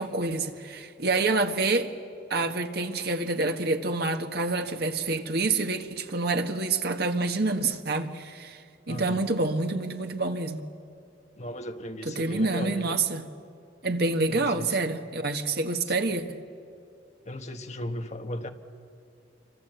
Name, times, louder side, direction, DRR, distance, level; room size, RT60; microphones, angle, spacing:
voice 1, 0.0-1.9 2.3-8.6 8.9-10.6 12.0-13.3 13.8-16.4, right 3 dB, 60° right, 1.5 m, -27 dB
voice 2, 8.9-9.3 11.4-12.9 14.3-14.8 17.2-18.5, left 1 dB, 40° left, 1.3 m, -36 dB
27.0 x 24.5 x 8.0 m
head